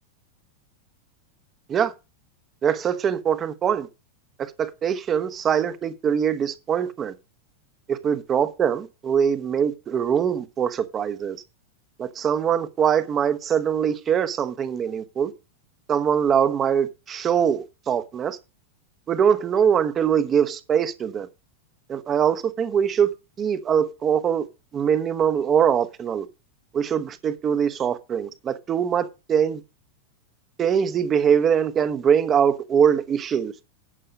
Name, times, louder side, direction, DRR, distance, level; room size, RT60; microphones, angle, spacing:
voice 1, 2.6-3.9 4.6-7.1 7.9-11.4 12.0-15.3 15.9-18.4 19.1-21.3 21.9-23.1 23.4-24.5 24.7-26.3 26.7-29.6 30.6-33.5, right 8 dB, 25° right, 1.0 m, -22 dB
11.0 x 6.7 x 5.1 m
figure-of-eight pair, 90°, 0 cm